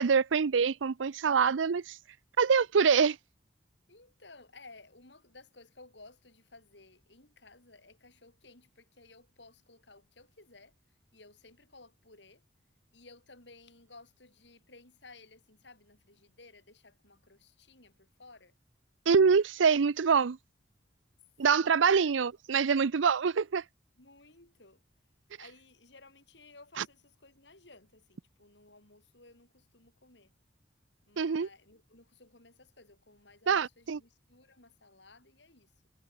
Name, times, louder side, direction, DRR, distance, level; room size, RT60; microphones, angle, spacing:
voice 1, 0.0-2.0 2.4-3.2 19.1-20.4 21.4-23.6 31.2-31.5 33.5-34.0, right 6 dB, 90° right, 0.5 m, -25 dB
voice 2, 3.9-10.7 11.1-12.4 12.9-18.5 21.5-21.9 24.0-24.8 25.4-30.3 31.1-35.9, left 3 dB, 70° left, 6.6 m, -57 dB
head